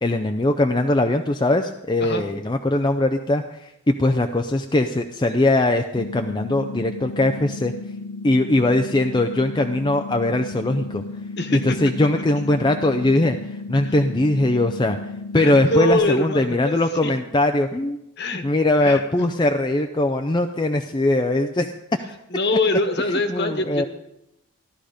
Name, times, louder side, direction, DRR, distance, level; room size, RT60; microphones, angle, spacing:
voice 1, 0.0-7.7 8.2-11.0 11.5-13.4 13.7-15.0 15.3-18.0 18.4-21.7 23.3-23.9, left 2 dB, 20° left, 5 dB, 0.5 m, -21 dB
sound 1, 5.9-15.9, left 3 dB, 75° left, 0.5 m, -34 dB
voice 2, 11.4-11.8 13.8-13.9 15.3-17.1 18.2-18.4 18.8-19.3 22.3-23.9, left 1 dB, 50° left, 7 dB, 1.3 m, -24 dB
15.0 x 12.0 x 5.0 m, 0.86 s
head